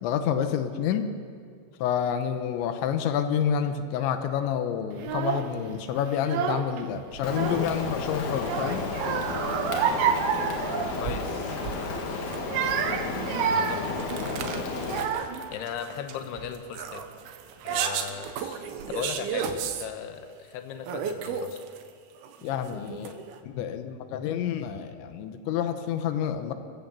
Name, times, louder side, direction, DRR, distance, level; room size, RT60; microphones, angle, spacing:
voice 1, 0.0-1.1 1.8-8.8 22.4-23.2 23.4-26.5, left 8 dB, 90° left, 8 dB, 3.3 m, -28 dB
Child speech kid speaking / Crying sobbing, 5.0-5.5 6.1-6.8 7.1-8.0 8.4-11.3 11.6-11.9 12.4-15.5 16.1-16.5 17.3-17.4 17.6-18.3, right 8 dB, 90° right, 3.6 m, -29 dB
Rain, 7.2-15.1, left 3 dB, 50° left, 2.7 m, -32 dB
sound 1, 8.8-8.9 9.3-9.5 10.3-10.4 10.9-11.0 11.2-11.4 11.7-12.4 12.6-12.8 13.1-13.2 13.6-19.9 20.8-21.9 22.2-23.4, right 7 dB, 70° right, 2.8 m, -34 dB
voice 2, 11.0-12.2 13.4-14.2 15.5-17.0 17.6-21.6, left 8 dB, 70° left, 7 dB, 3.0 m, -38 dB
28.0 x 15.0 x 7.2 m, 2.2 s
omnidirectional pair, 5.3 m